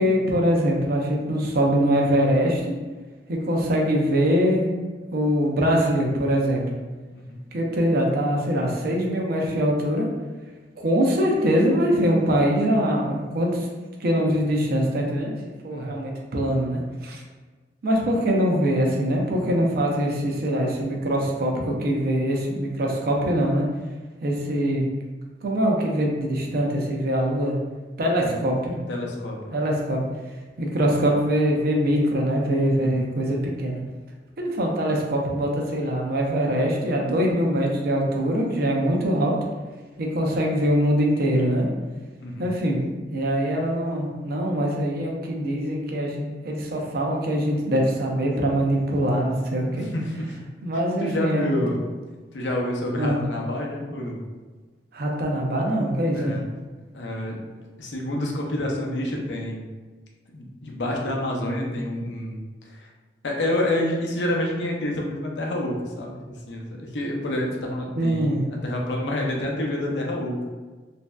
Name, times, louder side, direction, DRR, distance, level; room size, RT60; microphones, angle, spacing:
voice 1, 0.0-2.7 3.3-4.7 5.1-6.6 7.5-10.1 10.8-13.7 14.0-15.3 15.6-17.2 17.8-23.7 24.2-24.9 25.4-27.5 28.0-28.8 29.5-30.0 30.6-33.8 34.4-39.4 40.0-41.7 42.4-42.8 43.1-49.9 50.6-51.6 53.0-53.2 54.9-56.3 68.0-68.4, equal, 60° right, 0 dB, 0.5 m, -23 dB
voice 2, 28.9-29.5 32.8-33.1 42.2-42.5 49.7-50.4 51.0-51.8 52.3-54.2 56.1-56.4 56.9-57.4 57.8-59.6 60.3-62.4 62.7-62.9 63.2-66.2 66.5-70.4, left 1 dB, 90° left, -1 dB, 0.6 m, -28 dB
3.1 x 2.6 x 2.2 m, 1.3 s
head